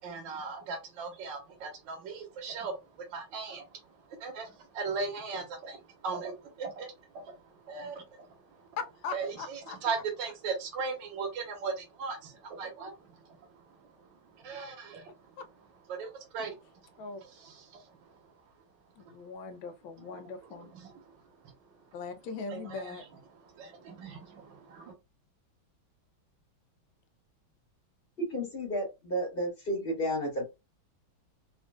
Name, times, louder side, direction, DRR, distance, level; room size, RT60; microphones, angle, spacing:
voice 1, 0.0-8.7 9.1-15.3 15.9-18.3 20.0-21.8 22.5-24.9, right 4 dB, 70° right, 1.7 m, -39 dB
voice 2, 8.8-9.8 15.4-15.5 17.0-17.2 19.0-20.7 21.9-23.0, left 5 dB, 85° left, 1.4 m, -40 dB
voice 3, 28.2-30.4, equal, 35° left, 1.0 m, -32 dB
4.1 x 2.4 x 2.3 m
omnidirectional pair, 2.2 m